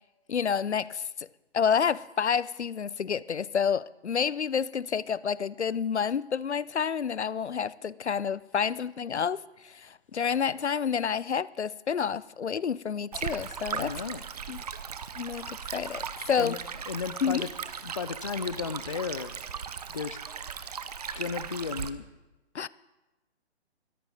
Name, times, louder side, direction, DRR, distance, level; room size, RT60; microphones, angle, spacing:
voice 1, 0.3-1.3 1.5-14.0 14.5-14.6 15.2-16.5 17.2-17.4 22.5-22.7, left 7 dB, 80° left, 0.5 m, -29 dB
Stream, 13.1-21.9, right 7 dB, 35° right, 0.7 m, -38 dB
voice 2, 13.7-14.2 16.4-16.6 16.9-17.5 17.8-19.4 19.9-20.2 21.2-22.0, left 5 dB, 30° left, 0.4 m, -34 dB
21.0 x 13.0 x 3.9 m
figure-of-eight pair, 135°, 33 cm